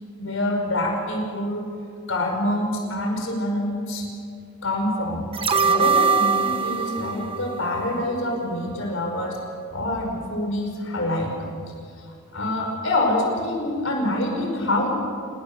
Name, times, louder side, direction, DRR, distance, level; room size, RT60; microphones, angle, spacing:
voice 1, 0.2-1.7 2.1-4.1 4.6-5.3 5.6-9.4 9.7-11.3 12.0-12.1 12.3-14.9, left 1 dB, 60° left, 2 dB, 5.2 m, -26 dB
sound 1, 5.3-8.5 8.8-8.9, right 5 dB, 25° right, 1.1 m, -23 dB
27.0 x 20.5 x 6.8 m, 2.3 s
head